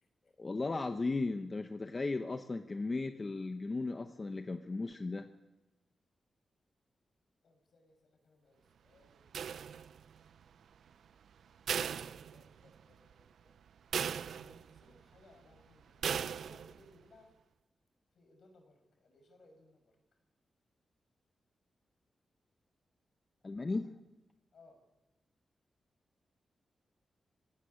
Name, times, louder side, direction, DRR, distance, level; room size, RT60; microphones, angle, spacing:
voice 1, 0.4-5.3 23.4-23.9, left 3 dB, 25° left, 7 dB, 0.8 m, -36 dB
voice 2, 7.4-9.3 11.9-13.5 14.3-17.3 18.1-20.2 24.5-24.8, left 2 dB, 65° left, 4 dB, 6.1 m, -64 dB
sound 1, 9.3-10.2 11.7-12.8 13.2-13.3 13.9-14.8 16.0-16.8, right 7 dB, 90° right, 0.7 m, -37 dB
19.5 x 17.5 x 10.0 m, 1.0 s
wide cardioid pair, 155°, 0 cm